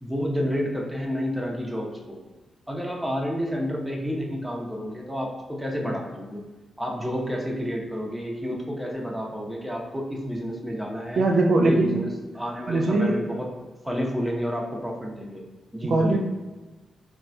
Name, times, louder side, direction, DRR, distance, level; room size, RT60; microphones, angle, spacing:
voice 1, 0.0-2.2 2.7-6.4 6.8-11.2 11.6-13.5 13.8-15.4 15.7-16.2, equal, 5° right, -1 dB, 0.8 m, -30 dB
voice 2, 11.2-12.1 12.7-13.2 15.8-16.2, right 2 dB, 65° right, 1 dB, 0.3 m, -21 dB
3.8 x 2.6 x 2.2 m, 1.2 s
hypercardioid pair, 40°, 0 cm